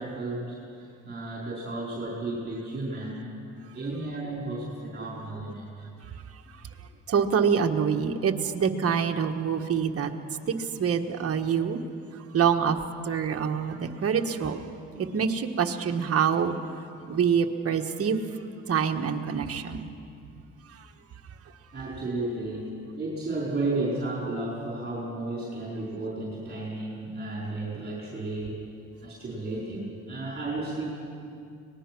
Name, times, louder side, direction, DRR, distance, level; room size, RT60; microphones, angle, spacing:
voice 1, 0.0-3.3 3.7-5.9 21.7-28.6 29.0-30.8, right 2 dB, 35° right, -5 dB, 4.7 m, -33 dB
voice 2, 7.1-10.1 10.8-11.8 12.3-12.8 13.1-14.6 15.0-16.6 17.1-18.2 18.7-19.8, right 7 dB, 50° right, 4 dB, 1.4 m, -25 dB
24.5 x 19.5 x 6.1 m, 2.5 s
cardioid pair, 90°, 30 cm